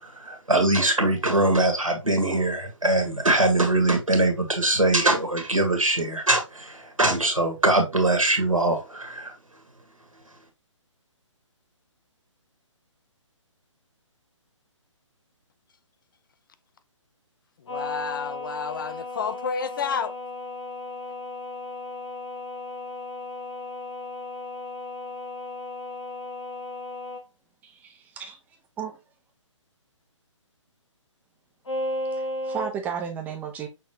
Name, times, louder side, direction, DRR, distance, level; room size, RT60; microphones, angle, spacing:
voice 1, 0.0-9.3, right 2 dB, 90° right, 1.7 m, -22 dB
sound 1, 17.7-27.2 31.6-32.7, left 2 dB, 65° left, 1.8 m, -35 dB
voice 2, 17.7-20.1, left 6 dB, 40° left, 0.5 m, -30 dB
voice 3, 27.6-28.4 28.8-29.0 32.1-33.7, right 7 dB, 10° right, 0.7 m, -34 dB
6.0 x 3.1 x 2.8 m
figure-of-eight pair, 135°, 17 cm